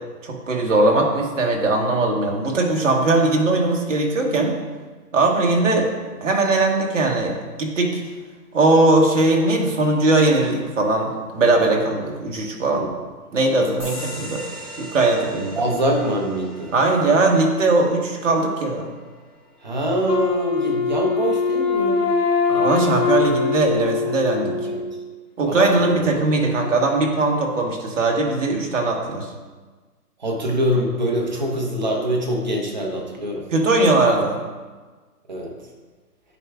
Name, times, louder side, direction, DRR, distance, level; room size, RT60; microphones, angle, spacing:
voice 1, 0.2-4.6 5.1-5.9 6.2-8.0 8.5-12.9 13.3-14.4 14.8-15.6 16.7-18.9 22.5-24.6 25.4-29.3 33.5-34.4, right 2 dB, 50° right, 1 dB, 1.1 m, -19 dB
sound 1, 13.8-20.9, equal, 5° left, 1.4 m, -40 dB
voice 2, 15.6-16.7 19.6-22.1 22.5-22.8 24.6-24.8 25.5-26.0 30.2-33.5 35.3-35.6, right 1 dB, 30° right, 0 dB, 0.7 m, -24 dB
Wind instrument woodwind instrument, 20.1-25.1, left 5 dB, 85° left, 0.9 m, -22 dB
9.6 x 4.5 x 2.3 m, 1.3 s
hypercardioid pair, 160°, 47 cm